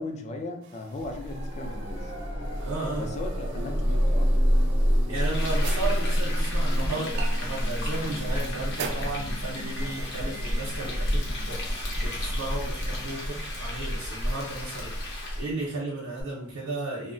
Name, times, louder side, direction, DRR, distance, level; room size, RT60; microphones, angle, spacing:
voice 1, 0.0-2.1 3.0-4.3, left 2 dB, 35° left, 4 dB, 0.3 m, -37 dB
sound 1, 0.6-15.1, right 6 dB, 55° right, 0.3 m, -46 dB
sound 2, 1.0-13.9 16.2-16.3, equal, 85° left, 1.1 m, -29 dB
voice 2, 2.6-3.0 5.1-17.1, right 2 dB, 90° right, -5 dB, 0.6 m, -34 dB
Frying (food), 5.1-15.5, equal, 60° left, 0.7 m, -32 dB
2.7 x 2.1 x 2.5 m, 0.64 s
head